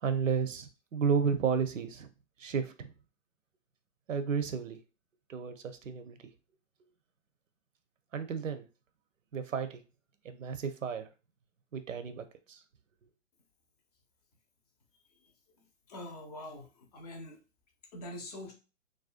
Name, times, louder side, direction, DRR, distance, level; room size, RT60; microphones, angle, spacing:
voice 1, 0.0-2.1 2.4-2.9 4.1-4.8 5.3-6.2 8.1-8.7 9.3-9.8 10.2-11.1 11.7-12.6, right 6 dB, 90° right, 9 dB, 0.6 m, -32 dB
voice 2, 15.5-17.4 17.9-18.5, left 1 dB, 35° left, 3 dB, 0.6 m, -45 dB
2.5 x 2.2 x 2.4 m, 0.31 s
hypercardioid pair, 140°, 37 cm